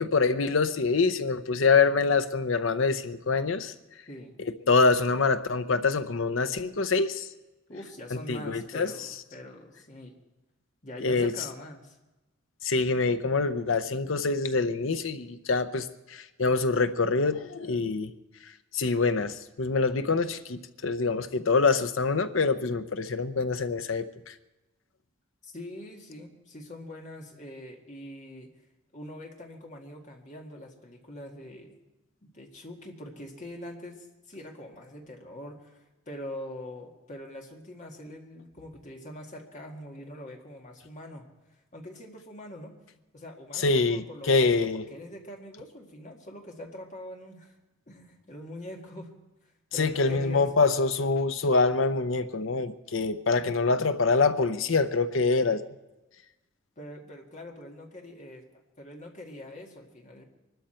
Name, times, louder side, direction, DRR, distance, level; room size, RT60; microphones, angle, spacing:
voice 1, 0.0-3.7 4.4-7.3 8.3-9.1 11.0-11.3 12.6-18.1 18.7-24.3 43.6-44.8 49.7-55.6, left 4 dB, 65° left, 10 dB, 0.7 m, -25 dB
voice 2, 7.7-10.2 10.8-12.0 25.4-28.5 28.9-31.8 32.2-41.2 41.7-42.8 43.1-47.6 47.9-49.1 49.4-50.6 56.8-58.4 58.8-60.2, left 1 dB, 35° left, 1 dB, 1.9 m, -43 dB
23.0 x 13.0 x 4.4 m, 1.0 s
head